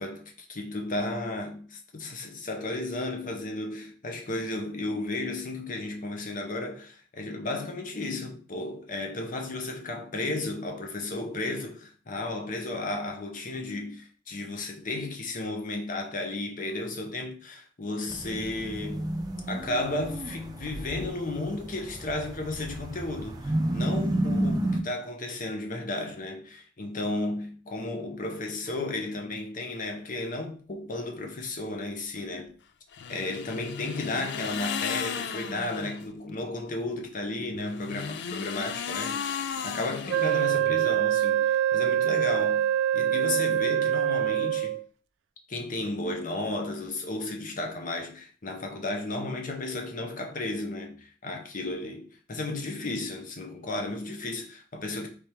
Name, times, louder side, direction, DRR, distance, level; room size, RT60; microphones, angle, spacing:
voice 1, 0.0-19.1 19.5-32.5 33.1-39.2 39.6-42.7 42.9-44.8 45.5-55.1, left 2 dB, 45° left, 0.8 m, -33 dB
sound 1, 18.1-24.8, right 1 dB, 20° right, 0.5 m, -31 dB
sound 2, 32.9-36.1 37.5-40.9, left 7 dB, 65° left, 0.4 m, -35 dB
Wind instrument woodwind instrument, 40.1-44.8, right 11 dB, 90° right, 0.3 m, -25 dB
3.5 x 3.3 x 4.5 m
head